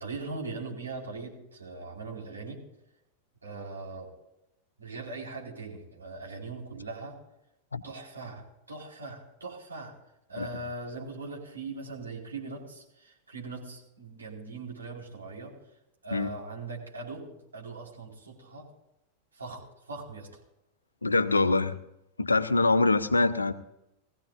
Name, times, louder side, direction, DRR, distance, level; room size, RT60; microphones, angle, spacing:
voice 1, 0.0-2.6 3.4-4.1 4.8-7.2 7.8-9.9 10.3-15.5 16.0-18.7 19.3-20.4, right 3 dB, 80° right, -3 dB, 4.8 m, -40 dB
voice 2, 21.0-21.8 22.2-23.5, left 3 dB, 80° left, 12 dB, 0.8 m, -24 dB
21.5 x 16.0 x 2.6 m, 0.87 s
figure-of-eight pair, 90°, 0 cm